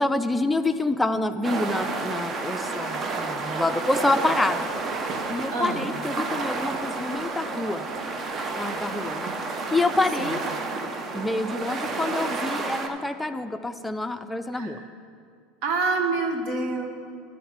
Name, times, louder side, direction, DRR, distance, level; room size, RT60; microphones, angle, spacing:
voice 1, 0.0-4.7 5.3-7.9 8.6-9.3 9.7-10.4 11.1-14.8, left 2 dB, 10° left, 8 dB, 0.5 m, -27 dB
sound 1, 1.4-12.9, right 3 dB, 35° right, 0.8 m, -30 dB
voice 2, 5.5-5.9 10.2-10.4 14.5-14.9 15.6-16.9, right 3 dB, 60° right, 5 dB, 1.1 m, -27 dB
11.0 x 4.3 x 7.3 m, 2.4 s
hypercardioid pair, 95°, 0 cm